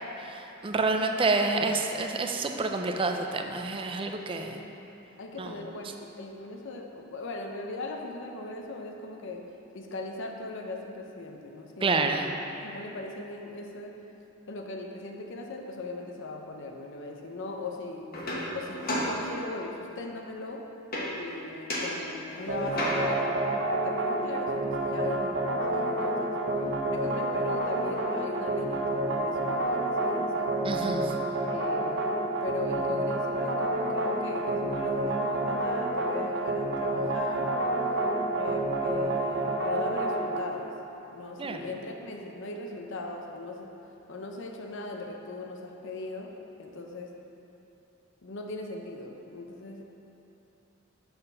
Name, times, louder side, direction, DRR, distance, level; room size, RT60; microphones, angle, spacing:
voice 1, 0.2-4.6 5.4-5.5 11.8-12.3 30.6-31.1 41.4-41.6, right 3 dB, 25° right, 4 dB, 0.4 m, -28 dB
voice 2, 4.3-4.7 5.2-9.5 9.7-14.0 14.5-18.1 18.5-20.7 21.1-23.4 23.7-26.5 26.9-30.5 31.5-37.6 38.3-40.7 41.1-43.7 44.1-47.2 48.2-49.8, left 3 dB, 65° left, 2 dB, 0.6 m, -39 dB
sound 1, 18.1-19.8 20.9-21.4 21.7-23.3 26.6-26.7 27.0-28.0, equal, 45° left, 1.1 m, -34 dB
sound 2, 22.5-40.4, right 2 dB, 60° right, 0.7 m, -29 dB
6.9 x 4.2 x 5.4 m, 3.0 s
head